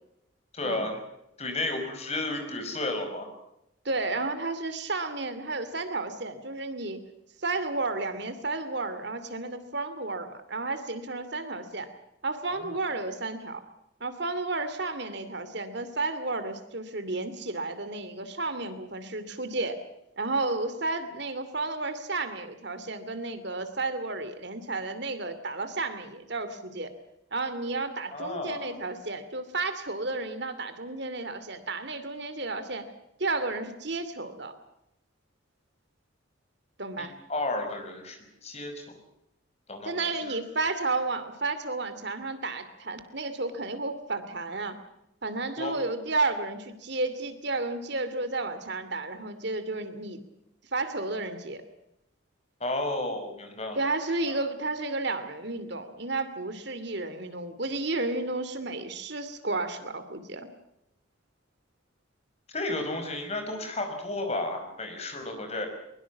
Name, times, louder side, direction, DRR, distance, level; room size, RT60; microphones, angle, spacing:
voice 1, 0.5-1.0 1.4-3.3 12.6-12.8 28.1-28.7 37.0-39.0 39.7-40.4 45.6-45.8 52.6-53.8 54.3-54.4 62.5-65.7, left 2 dB, 30° left, 5 dB, 5.5 m, -33 dB
voice 2, 3.8-7.0 7.4-11.9 12.2-13.6 14.0-19.8 20.2-26.9 27.3-32.8 33.2-34.5 36.8-37.2 39.8-44.8 45.2-50.2 50.7-51.6 53.8-60.5, right 3 dB, 55° right, 11 dB, 2.5 m, -32 dB
22.5 x 22.5 x 7.2 m, 0.83 s
head